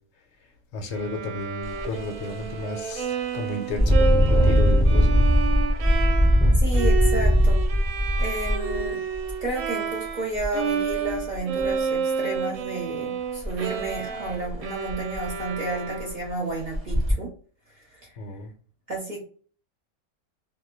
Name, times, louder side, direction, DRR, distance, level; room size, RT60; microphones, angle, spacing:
voice 1, 0.7-5.2 18.2-18.5, left 2 dB, 70° left, 0.9 m, -33 dB
Bowed string instrument, 0.9-10.3 10.5-16.4, right 6 dB, 70° right, 0.9 m, -30 dB
Engine, 1.6-1.8 2.3-2.5 3.7-9.5 10.4-10.5 10.9-11.6 13.4-13.5 13.9-14.0 14.5-14.6 14.9-15.4 16.0-16.1 16.7-17.1, equal, 5° right, 0.6 m, -20 dB
voice 2, 6.6-7.6 8.2-9.0 9.4-17.3 17.9-18.1 18.9-19.2, right 2 dB, 40° right, 0.7 m, -31 dB
2.3 x 2.2 x 3.7 m
omnidirectional pair, 1.5 m